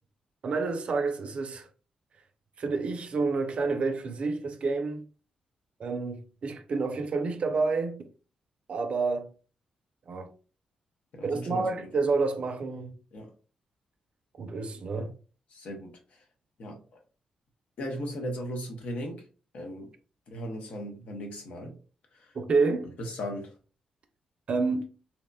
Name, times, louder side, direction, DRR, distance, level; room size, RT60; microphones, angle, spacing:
voice 1, 0.4-1.7 2.6-5.0 5.8-8.1 8.7-9.3 10.1-10.3 11.2-13.0 14.4-15.1 22.3-22.9 24.5-24.8, right 4 dB, 60° right, 0.4 m, -29 dB
voice 2, 11.1-11.9 13.1-13.3 15.0-15.1 15.5-16.2 16.6-16.9 17.8-19.3 19.5-19.9 20.3-21.8 22.1-22.3 23.0-23.5, equal, 70° left, 0.7 m, -37 dB
2.8 x 2.1 x 2.2 m
supercardioid pair, 50°, 2 cm